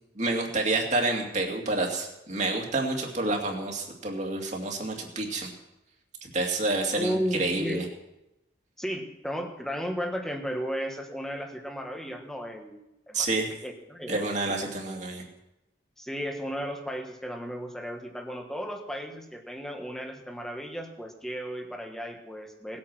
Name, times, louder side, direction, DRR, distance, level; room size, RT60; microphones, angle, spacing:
voice 1, 0.2-5.5 6.2-7.8 13.1-13.5 14.1-15.2, right 2 dB, 40° right, 1 dB, 2.5 m, -28 dB
voice 2, 6.9-7.9 8.8-13.3 13.6-14.6 16.0-22.8, equal, 5° left, 3 dB, 1.4 m, -34 dB
19.0 x 8.8 x 6.2 m, 0.93 s
head